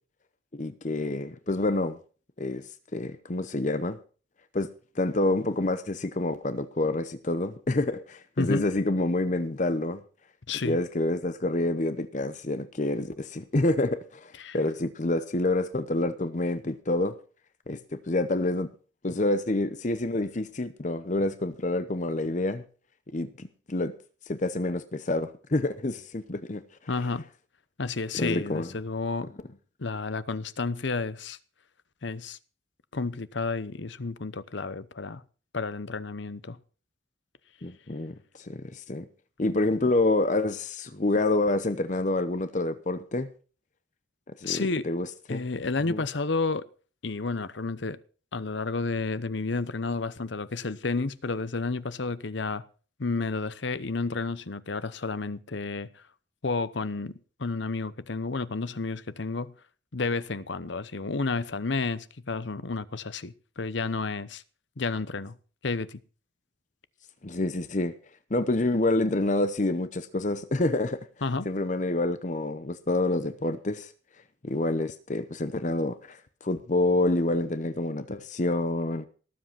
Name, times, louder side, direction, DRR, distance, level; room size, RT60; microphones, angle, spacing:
voice 1, 0.5-2.0 2.4-2.7 2.9-4.0 4.5-4.7 5.0-10.0 10.6-17.2 17.7-18.7 19.0-22.6 23.1-23.9 24.3-26.6 28.1-28.7 37.6-39.1 39.4-43.3 44.4-45.4 45.9-46.0 67.2-67.9 68.3-71.0 71.4-73.9 74.4-79.1, left 2 dB, 40° left, 0.8 m, -27 dB
voice 2, 10.5-10.8 14.4-14.6 17.7-17.8 26.9-27.3 27.8-29.3 29.8-31.4 32.0-32.4 32.9-35.2 35.5-36.6 44.4-44.8 45.3-46.6 47.0-48.0 48.3-52.6 53.0-56.0 56.4-59.5 59.9-64.4 64.8-65.4 65.6-66.0 71.2-71.5, left 3 dB, 65° left, 0.8 m, -31 dB
18.0 x 7.7 x 5.8 m
head